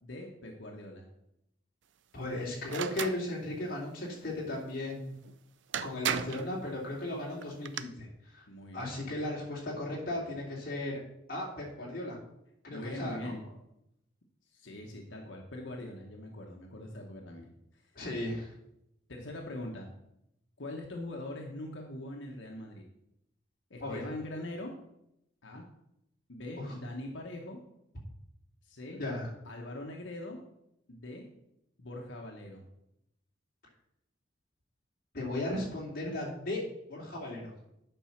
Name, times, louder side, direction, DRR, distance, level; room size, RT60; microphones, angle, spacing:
voice 1, 0.0-1.0 8.5-8.9 12.7-13.4 14.5-17.8 19.1-19.9 20.6-22.8 23.7-24.7 25.4-25.6 26.3-27.6 28.6-29.0 29.4-30.4 30.9-31.3 31.8-32.6, left 1 dB, 90° left, 1 dB, 1.2 m, -42 dB
voice 2, 2.1-5.1 5.8-8.5 8.7-11.0 11.3-12.2 12.6-13.3 17.9-18.5 23.8-24.0 26.6-26.8 28.9-29.3 35.1-36.6 36.9-37.5, left 1 dB, 50° left, -3 dB, 2.8 m, -36 dB
sound 1, 2.7-3.2 5.2-5.3 5.7-6.5 7.4-7.8, right 8 dB, 75° right, 0.5 m, -34 dB
9.1 x 5.5 x 5.8 m, 0.81 s
head